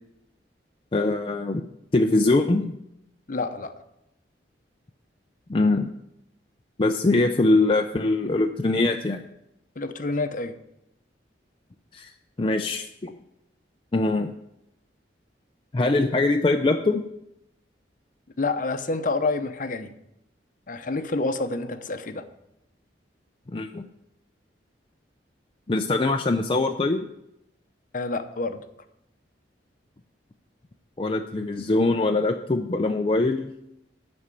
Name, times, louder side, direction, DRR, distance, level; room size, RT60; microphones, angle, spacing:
voice 1, 0.9-1.7 1.9-2.7 5.5-5.9 6.8-9.2 11.9-12.1 12.4-13.2 13.9-14.3 15.7-17.0 23.5-23.9 25.7-27.1 31.0-33.5, left 2 dB, 30° left, 3 dB, 0.5 m, -22 dB
voice 2, 3.3-3.7 9.8-10.5 18.4-19.9 20.7-22.3 27.9-28.6, left 3 dB, 45° left, 9 dB, 0.8 m, -28 dB
12.5 x 4.3 x 8.3 m, 0.83 s
head